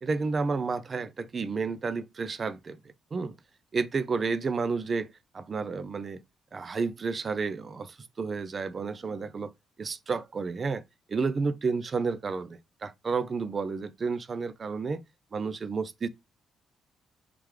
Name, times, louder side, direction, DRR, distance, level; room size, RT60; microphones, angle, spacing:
voice 1, 0.0-2.8 3.1-3.3 3.7-6.2 6.5-9.5 9.8-10.8 11.1-15.0 15.3-16.1, right 4 dB, 40° right, 0.4 m, -31 dB
3.3 x 3.0 x 3.7 m
cardioid pair, 90°, 0 cm